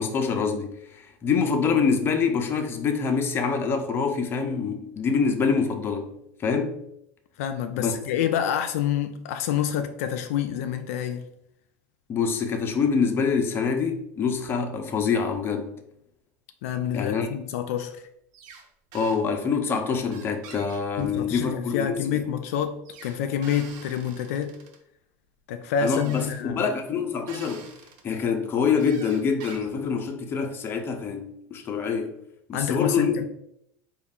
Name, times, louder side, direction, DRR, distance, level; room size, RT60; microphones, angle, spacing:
voice 1, 0.0-6.2 6.4-6.8 7.8-7.9 12.1-15.7 16.9-17.3 18.9-22.2 25.8-27.6 28.0-32.2 32.5-33.3, left 5 dB, 30° left, 0.6 m, -25 dB
voice 2, 7.4-11.3 16.6-18.0 21.0-24.6 25.5-26.7 32.5-33.3, left 8 dB, 80° left, 0.4 m, -28 dB
sound 1, 18.3-18.7 18.9-19.2 20.1-21.5 22.8-24.8 25.8-26.4 27.3-28.0 28.8-29.9, right 5 dB, 60° right, 0.8 m, -46 dB
4.4 x 2.4 x 3.5 m
supercardioid pair, 120°, 8 cm